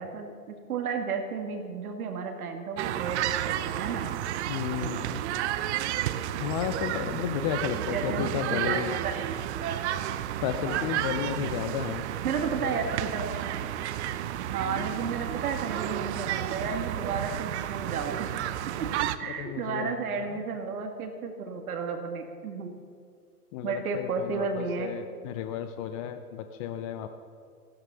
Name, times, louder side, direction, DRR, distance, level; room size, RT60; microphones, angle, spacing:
voice 1, 0.0-4.1 7.7-9.8 10.7-10.9 12.2-13.6 14.4-18.3 18.8-22.7 23.6-24.9, right 5 dB, 65° right, 4 dB, 2.0 m, -33 dB
sound 1, 2.8-19.2, right 12 dB, 45° right, 0.9 m, -32 dB
voice 2, 4.5-5.2 6.4-9.0 10.4-12.1 12.6-12.8 14.6-14.9 19.3-20.3 23.5-27.1, left 10 dB, 25° left, 9 dB, 0.5 m, -33 dB
15.0 x 13.0 x 6.9 m, 2.2 s
hypercardioid pair, 120°, 46 cm